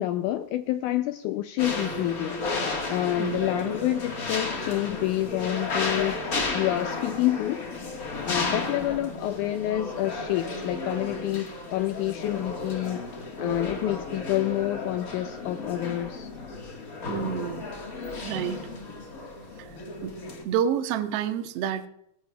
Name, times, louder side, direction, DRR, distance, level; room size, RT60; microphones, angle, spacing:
voice 1, 0.0-2.4 2.9-7.6 8.2-13.0 13.4-16.3, left 14 dB, 85° left, 9 dB, 1.8 m, -28 dB
sound 1, 1.6-20.4, left 3 dB, 40° left, 1.2 m, -33 dB
voice 2, 17.1-17.7 18.2-18.6 19.6-19.7 20.0-20.1 20.4-21.9, right 9 dB, 80° right, 7 dB, 1.4 m, -28 dB
19.5 x 14.0 x 2.3 m, 0.74 s
omnidirectional pair, 4.0 m